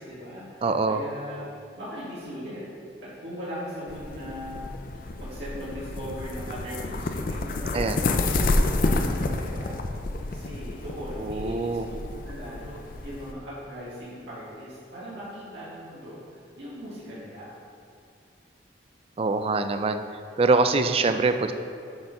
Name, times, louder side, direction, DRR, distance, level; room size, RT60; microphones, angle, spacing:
voice 1, 0.0-1.5 1.8-2.6 3.0-4.6 5.2-8.0 8.4-9.8 10.3-16.2 16.6-17.5, equal, 75° right, -10 dB, 1.9 m, -39 dB
voice 2, 0.6-1.0 7.7-8.0 11.2-11.9 19.2-20.0 20.4-21.5, right 3 dB, 35° right, 8 dB, 0.4 m, -24 dB
sound 1, 3.9-13.3, left 2 dB, 50° left, 0.4 m, -29 dB
7.9 x 4.4 x 5.3 m, 2.4 s
head